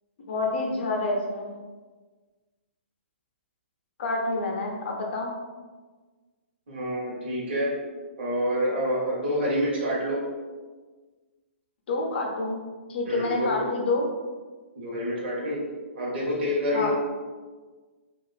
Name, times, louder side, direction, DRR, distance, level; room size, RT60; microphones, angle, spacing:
voice 1, 0.3-1.5 4.0-5.3 11.9-12.6 12.9-14.1 16.7-16.9, left 2 dB, 55° left, 0 dB, 0.5 m, -28 dB
voice 2, 6.7-7.7 8.2-10.2 13.0-13.7 14.8-15.6 15.9-16.9, equal, 55° right, -5 dB, 0.8 m, -27 dB
2.4 x 2.3 x 2.3 m, 1.4 s
figure-of-eight pair, 125°, 7 cm